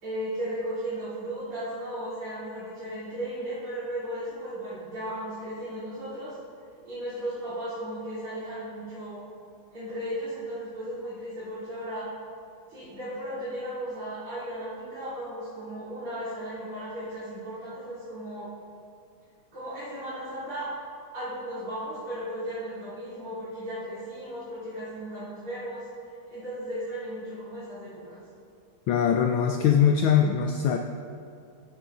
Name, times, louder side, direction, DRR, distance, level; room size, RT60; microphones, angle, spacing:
voice 1, 0.0-6.4 6.8-9.2 9.7-12.1 12.7-18.5 19.5-20.7 21.1-25.9 26.3-28.2, right 1 dB, 75° right, -13 dB, 4.0 m, -35 dB
voice 2, 28.9-30.8, left 8 dB, 75° left, 5 dB, 1.2 m, -22 dB
14.5 x 10.5 x 2.6 m, 2.4 s
omnidirectional pair, 2.4 m